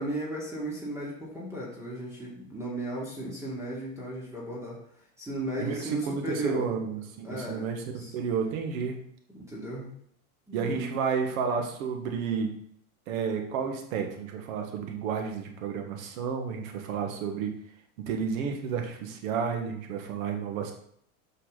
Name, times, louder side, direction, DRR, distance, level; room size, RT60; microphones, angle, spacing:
voice 1, 0.0-4.8 5.2-6.8 7.2-8.1 9.3-9.9 10.5-10.8, right 1 dB, 5° right, -5 dB, 2.8 m, -36 dB
voice 2, 5.6-9.1 10.5-12.5 13.1-17.5 18.1-20.7, right 6 dB, 75° right, 4 dB, 1.8 m, -31 dB
8.3 x 5.7 x 4.1 m, 0.69 s
supercardioid pair, 115°, 42 cm